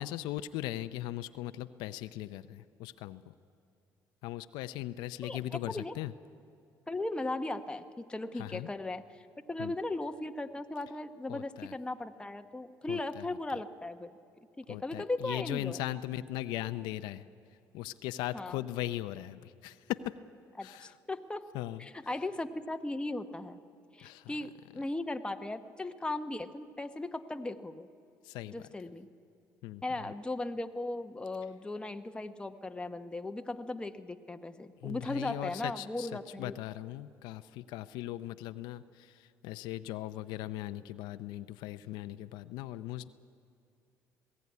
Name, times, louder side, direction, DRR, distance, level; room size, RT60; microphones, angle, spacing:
voice 1, 0.0-3.3 4.2-6.1 8.3-8.7 9.6-9.7 11.3-11.7 12.9-13.2 14.7-17.2 17.7-20.1 20.6-20.9 21.5-21.8 24.0-24.3 28.2-28.6 29.6-29.8 34.8-43.1, left 14 dB, 85° left, 12 dB, 0.6 m, -39 dB
voice 2, 5.2-5.9 6.9-9.2 9.5-14.1 14.6-15.8 18.3-18.6 20.6-21.5 21.8-23.6 23.9-27.9 28.5-29.1 29.8-36.6, left 2 dB, 15° left, 7 dB, 1.0 m, -37 dB
20.5 x 15.5 x 9.6 m, 2.5 s
supercardioid pair, 85°, 7 cm